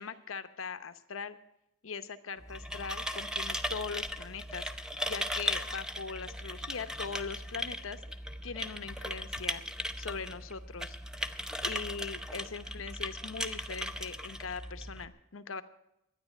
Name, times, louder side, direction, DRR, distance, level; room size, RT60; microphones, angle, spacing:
voice 1, 0.0-1.4 1.8-8.0 8.4-9.6 10.0-11.0 11.6-15.6, left 5 dB, 85° left, 11 dB, 0.9 m, -40 dB
sound 1, 2.4-15.1, equal, 5° right, 0.7 m, -38 dB
12.0 x 9.9 x 8.1 m, 0.84 s
head